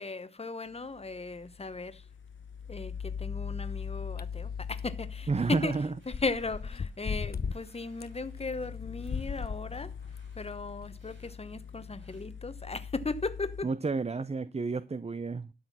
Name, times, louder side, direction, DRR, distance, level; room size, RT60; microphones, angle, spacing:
voice 1, 0.0-2.1 2.7-13.7, left 3 dB, 30° left, 1.0 m, -37 dB
sound 1, 0.7-13.6, left 7 dB, 75° left, 1.1 m, -42 dB
sound 2, 4.2-4.3 4.8-4.9 5.7-5.8 6.1-7.6 8.0-8.1 8.8-9.6 10.2-10.3 10.8-10.9, left 5 dB, 55° left, 0.7 m, -35 dB
voice 2, 5.3-5.9 13.6-15.5, right 4 dB, 35° right, 0.6 m, -30 dB
sound 3, 6.0-7.1 7.5-8.5 9.0-9.6 10.0-10.5 11.0-11.4 12.0-12.2, right 3 dB, 80° right, 7.3 m, -67 dB
12.5 x 6.6 x 5.6 m
wide cardioid pair, 90°, 20 cm